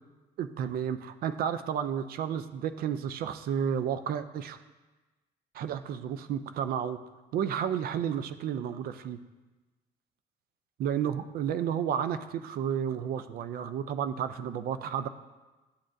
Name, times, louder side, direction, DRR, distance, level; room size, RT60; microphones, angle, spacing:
voice 1, 0.4-4.6 5.5-7.0 7.3-9.2 10.8-15.1, right 8 dB, 60° right, 11 dB, 0.4 m, -32 dB
11.5 x 6.2 x 2.6 m, 1.2 s
cardioid pair, 110°, 17 cm